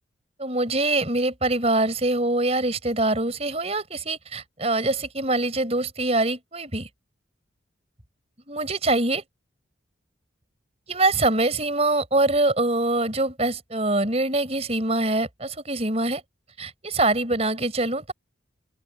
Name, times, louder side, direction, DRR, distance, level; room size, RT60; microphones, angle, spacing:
voice 1, 0.4-6.9 8.5-9.2 10.9-16.2 16.6-18.1, right 2 dB, 30° right, 4.8 m, -24 dB
open air
head